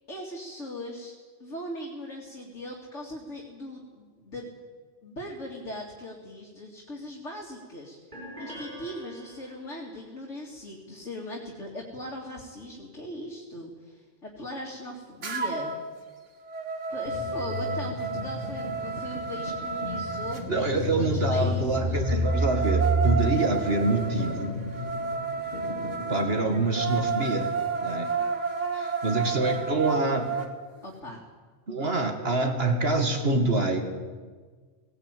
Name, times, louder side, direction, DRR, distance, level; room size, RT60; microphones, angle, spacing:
voice 1, 0.1-1.1 1.4-4.6 5.0-8.0 8.4-15.8 16.9-22.0 30.8-31.2, left 1 dB, 90° left, -1 dB, 2.9 m, -39 dB
sound 1, 8.1-9.9, equal, 40° right, 6.4 m, -44 dB
sound 2, 15.2-15.8 16.2-20.4 21.9-30.5, right 5 dB, 90° right, 2.1 m, -31 dB
sound 3, 17.1-27.5, right 1 dB, 55° left, 3.8 m, -31 dB
voice 2, 20.5-24.6 26.1-27.5 27.8-28.1 28.7-30.4 31.7-33.8, right 2 dB, 55° right, 5 dB, 2.2 m, -26 dB
18.5 x 18.0 x 9.1 m, 1.5 s
omnidirectional pair, 1.2 m